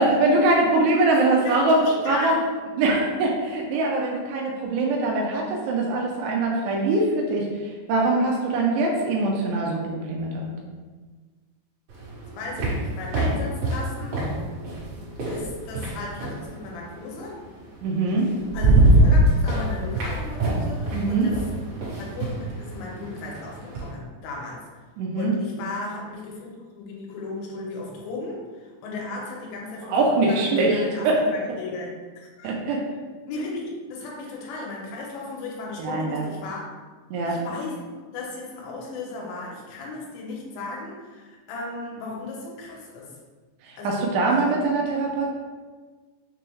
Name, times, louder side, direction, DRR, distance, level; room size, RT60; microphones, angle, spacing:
voice 1, 0.0-2.4 2.8-10.5 17.8-18.3 20.9-21.3 25.0-25.4 29.9-31.2 32.4-32.8 35.8-36.3 37.1-37.4 43.6-45.3, right 2 dB, 85° right, -1 dB, 2.6 m, -23 dB
voice 2, 1.3-2.5 12.3-14.2 15.3-17.4 18.5-21.4 21.7-24.7 25.2-31.9 32.2-32.5 33.3-36.6 37.3-43.1 43.8-44.5, left 3 dB, 90° left, -2 dB, 3.2 m, -35 dB
sound 1, 11.9-16.5 17.7-17.8 18.2-23.9, right 1 dB, 65° right, 2.2 m, -23 dB
6.8 x 2.3 x 3.2 m, 1.4 s
omnidirectional pair, 5.2 m